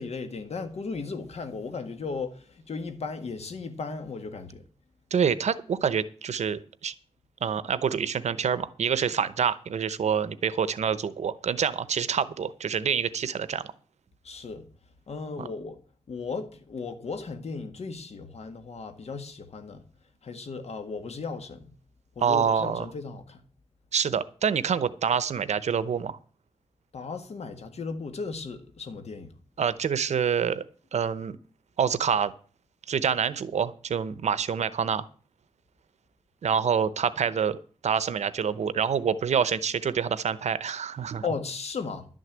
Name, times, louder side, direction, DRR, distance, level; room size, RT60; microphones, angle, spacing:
voice 1, 0.0-4.6 14.2-14.7 15.1-15.8 16.1-19.8 20.2-21.7 22.2-23.4 26.9-29.3 41.2-42.1, left 4 dB, 70° left, 1.8 m, -36 dB
voice 2, 5.1-6.9 7.4-13.6 15.4-15.5 22.2-22.9 23.9-26.2 29.6-30.6 30.9-31.4 31.8-32.3 32.9-35.1 36.4-37.6 37.8-41.2, right 7 dB, 85° right, 0.8 m, -26 dB
11.5 x 6.5 x 8.8 m
wide cardioid pair, 115°, 11 cm